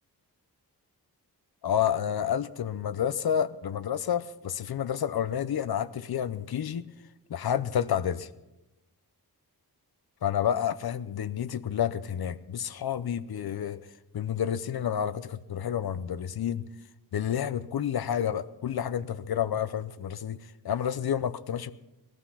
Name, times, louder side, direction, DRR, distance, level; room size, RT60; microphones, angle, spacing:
voice 1, 1.6-6.9 7.3-8.3 10.2-13.8 14.1-16.6 17.1-20.4 20.6-21.7, left 9 dB, 70° left, 15 dB, 0.8 m, -29 dB
19.0 x 12.5 x 5.7 m, 0.97 s
wide cardioid pair, 95°, 39 cm